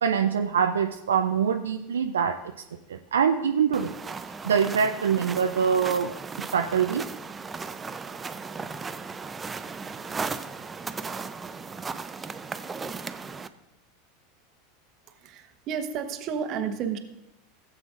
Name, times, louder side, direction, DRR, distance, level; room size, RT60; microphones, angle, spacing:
voice 1, 0.0-2.3 2.9-3.9 4.4-6.1 6.5-7.1, right 7 dB, 80° right, 5 dB, 0.4 m, -24 dB
sound 1, 3.7-13.5, right 4 dB, 20° right, 0.5 m, -36 dB
voice 2, 15.1-17.0, right 7 dB, 45° right, 6 dB, 1.0 m, -31 dB
17.0 x 7.6 x 2.5 m, 0.92 s
hypercardioid pair, 85°, 0 cm